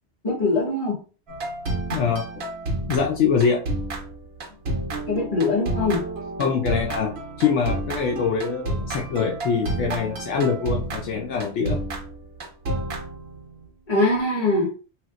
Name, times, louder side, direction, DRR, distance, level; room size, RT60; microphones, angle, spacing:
voice 1, 0.2-1.0 5.1-6.0 13.9-14.7, left 2 dB, 30° left, -2 dB, 1.2 m, -22 dB
sound 1, 1.3-13.6, right 2 dB, 60° right, 1.1 m, -30 dB
voice 2, 1.9-2.3 2.9-3.6 6.4-7.1 7.4-11.8, left 6 dB, 75° left, 2 dB, 0.9 m, -23 dB
3.1 x 2.7 x 2.4 m, 0.36 s
omnidirectional pair, 1.2 m